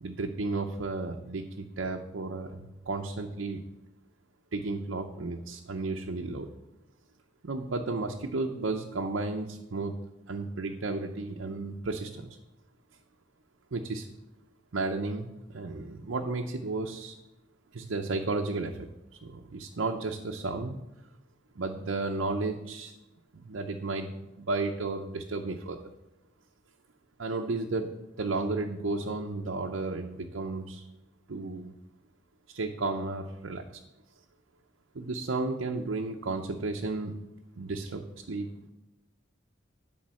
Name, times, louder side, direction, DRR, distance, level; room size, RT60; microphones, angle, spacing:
voice 1, 0.0-3.6 4.5-6.5 7.4-9.9 10.3-12.4 13.7-14.1 14.7-17.1 17.7-20.7 21.6-22.9 23.3-25.8 27.2-27.9 28.2-30.9 31.3-31.7 32.5-33.8 34.9-37.1 37.6-38.5, right 3 dB, 75° right, 2 dB, 0.7 m, -33 dB
11.5 x 3.9 x 7.6 m, 0.96 s
head